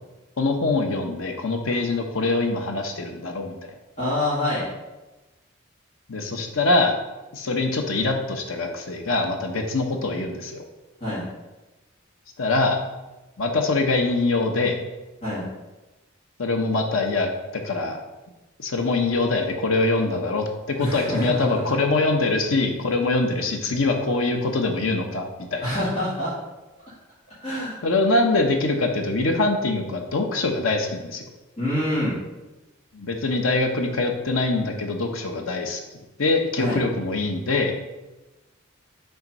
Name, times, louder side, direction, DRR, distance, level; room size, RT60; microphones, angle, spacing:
voice 1, 0.4-3.5 6.1-7.0 7.3-10.6 12.4-12.8 13.4-14.8 16.4-18.0 18.6-25.8 27.8-31.3 32.9-35.8 36.2-37.7, left 3 dB, 85° left, 3 dB, 0.9 m, -23 dB
voice 2, 4.0-4.7 11.0-11.2 15.2-15.4 20.8-21.7 25.6-26.3 27.4-27.8 31.6-32.2 36.6-36.8, left 1 dB, 30° left, -11 dB, 2.1 m, -26 dB
5.8 x 3.9 x 5.3 m, 1.1 s
head